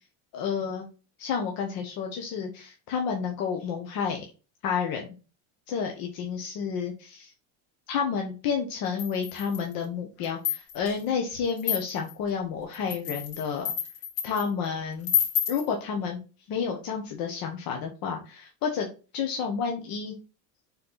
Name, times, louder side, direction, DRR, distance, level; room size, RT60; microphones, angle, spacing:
voice 1, 0.3-0.9 1.2-4.2 4.6-5.1 5.7-7.3 7.9-13.7 14.2-15.1 15.5-16.2 16.5-18.9 19.1-20.2, left 6 dB, 60° left, 2 dB, 1.3 m, -30 dB
sound 1, 9.0-9.7 10.2-10.9 11.6-12.1 12.7-14.5 15.0-15.7, left 9 dB, 80° left, 2.7 m, -29 dB
5.8 x 4.4 x 4.0 m, 0.33 s
cardioid pair, 140°, 40 cm